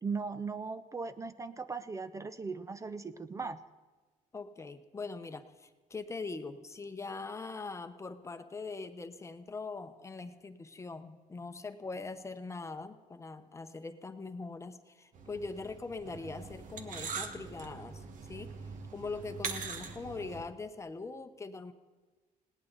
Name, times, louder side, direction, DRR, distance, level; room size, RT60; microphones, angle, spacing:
voice 1, 0.0-3.6, right 4 dB, 20° right, 12 dB, 0.5 m, -38 dB
voice 2, 4.3-18.5 18.9-21.7, left 3 dB, 20° left, 9 dB, 0.8 m, -42 dB
sound 1, 15.1-20.4, right 5 dB, 65° right, 1.5 m, -42 dB
20.0 x 18.0 x 4.0 m, 1.3 s
cardioid pair, 145°, 15 cm